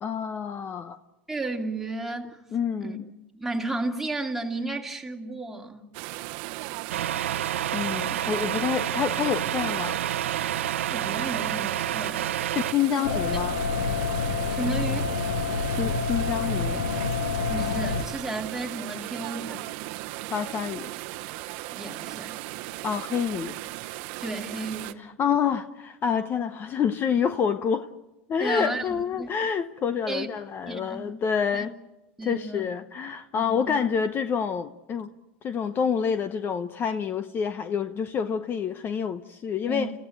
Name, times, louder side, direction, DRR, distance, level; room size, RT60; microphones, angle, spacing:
voice 1, 0.0-1.0 2.5-3.0 7.7-10.0 12.5-13.6 15.7-16.8 20.3-20.9 22.8-23.6 25.0-27.9 28.3-31.7 32.2-35.1 35.4-39.9, left 7 dB, 30° left, 0.9 m, -27 dB
voice 2, 1.3-2.4 2.8-3.0 3.3-5.9 10.9-12.3 12.9-13.0 14.5-15.1 17.5-19.8 21.7-22.3 24.2-25.1 28.4-29.3 30.1-30.3 30.7-31.1 31.5-31.7 32.2-32.7 33.3-33.8 39.7-39.9, right 2 dB, 5° right, 2.6 m, -33 dB
sound 1, 5.9-24.9, right 19 dB, 60° right, 0.9 m, -37 dB
Truck, 6.9-12.7, right 11 dB, 90° right, 0.9 m, -29 dB
sound 2, 13.0-18.0, left 4 dB, 80° left, 2.2 m, -27 dB
29.5 x 15.5 x 8.9 m
hypercardioid pair, 110°, 7 cm